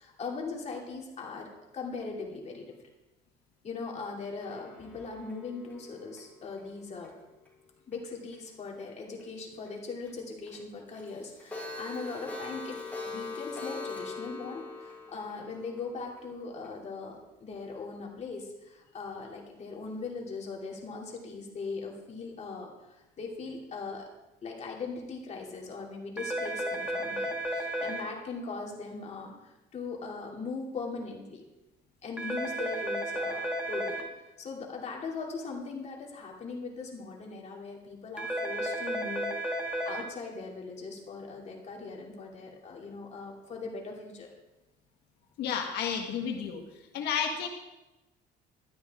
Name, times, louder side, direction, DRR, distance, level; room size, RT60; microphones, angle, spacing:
voice 1, 0.0-1.5 1.7-2.7 3.6-7.1 7.9-12.8 13.0-24.1 24.4-31.4 32.0-39.3 39.5-44.3, left 4 dB, 40° left, -1 dB, 2.8 m, -40 dB
Clock, 4.4-7.5 7.9-8.0 8.3-8.4 8.8-8.9 9.2-9.3 9.7-9.8 10.0-10.1 10.5-10.6 10.9-16.7, left 3 dB, 10° left, 5.0 m, -42 dB
sound 1, 26.2-28.0 32.2-34.0 38.2-40.0, equal, 5° right, 1.9 m, -33 dB
voice 2, 45.4-46.6 46.9-47.5, left 7 dB, 80° left, 2 dB, 1.5 m, -31 dB
13.0 x 12.0 x 3.7 m, 1.0 s
cardioid pair, 110°, 17 cm